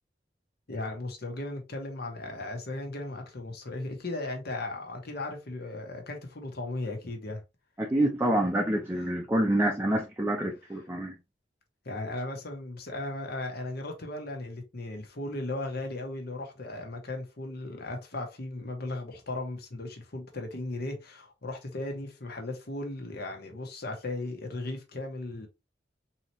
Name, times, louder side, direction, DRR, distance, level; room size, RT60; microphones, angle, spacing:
voice 1, 0.7-7.4 11.8-25.5, left 2 dB, 60° left, 1.1 m, -36 dB
voice 2, 7.8-11.1, right 1 dB, 15° right, 0.6 m, -27 dB
4.0 x 2.9 x 3.0 m
head